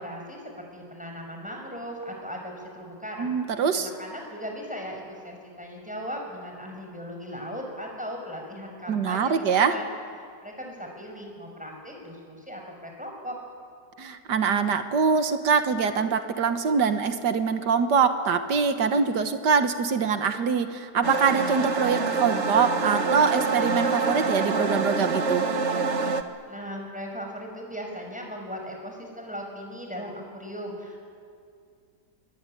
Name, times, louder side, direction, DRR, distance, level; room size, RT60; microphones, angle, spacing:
voice 1, 0.0-3.3 3.7-9.9 10.4-13.4 26.5-31.0, equal, 5° right, 1 dB, 5.5 m, -38 dB
voice 2, 3.2-3.9 8.9-9.8 14.0-25.5, right 6 dB, 90° right, 8 dB, 1.9 m, -24 dB
sound 1, 21.0-26.2, right 4 dB, 45° right, 1.5 m, -26 dB
25.0 x 23.0 x 10.0 m, 2.3 s
omnidirectional pair, 1.8 m